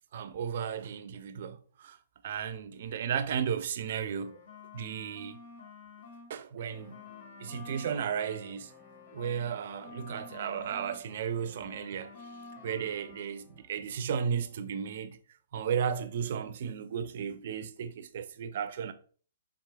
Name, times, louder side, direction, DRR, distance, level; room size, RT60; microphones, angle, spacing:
voice 1, 0.1-2.0 2.2-4.4 4.7-5.4 6.3-7.0 7.4-8.7 9.1-15.2 15.5-18.9, right 7 dB, 60° right, 0.4 m, -34 dB
sound 1, 4.1-6.3 6.6-11.0 11.3-13.3, left 5 dB, 55° left, 0.9 m, -50 dB
sound 2, 6.6-14.6, left 2 dB, 10° left, 0.9 m, -61 dB
4.6 x 3.5 x 2.2 m
hypercardioid pair, 140°, 0 cm